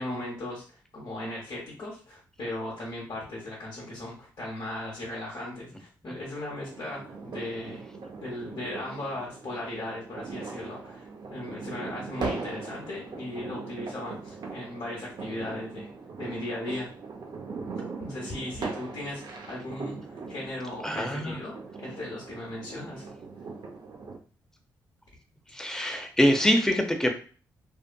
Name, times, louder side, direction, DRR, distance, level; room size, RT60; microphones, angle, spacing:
voice 1, 0.0-7.8 8.2-15.9 16.2-16.9 18.0-23.1, left 1 dB, 55° left, -4 dB, 1.0 m, -37 dB
sound 1, 6.6-24.2, right 4 dB, 55° right, 0.6 m, -40 dB
voice 2, 20.8-21.4 25.5-27.1, equal, 5° left, 4 dB, 0.7 m, -24 dB
2.6 x 2.5 x 2.2 m, 0.39 s
supercardioid pair, 45°, 9 cm